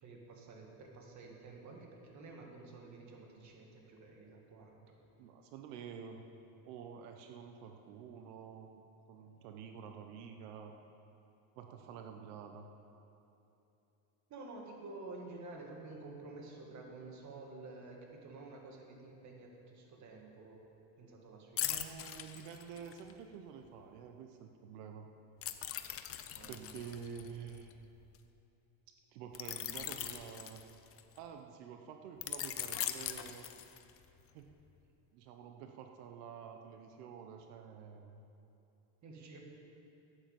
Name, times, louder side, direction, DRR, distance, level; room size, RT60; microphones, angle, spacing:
voice 1, 0.0-5.0 14.3-20.6 21.0-22.0 26.3-26.9 39.0-39.4, right 3 dB, 40° right, 1 dB, 2.2 m, -51 dB
voice 2, 5.2-6.3 6.6-10.7 11.6-12.7 21.6-25.1 26.5-27.7 29.1-30.6 31.2-33.5 34.3-34.5 35.1-38.2, right 7 dB, 85° right, 5 dB, 1.0 m, -49 dB
sound 1, 21.6-23.1 25.4-28.2 29.3-31.2 32.2-34.0 34.5-34.7, left 11 dB, 30° left, 0.6 m, -41 dB
12.0 x 8.7 x 7.5 m, 2.9 s
cardioid pair, 135°, 45 cm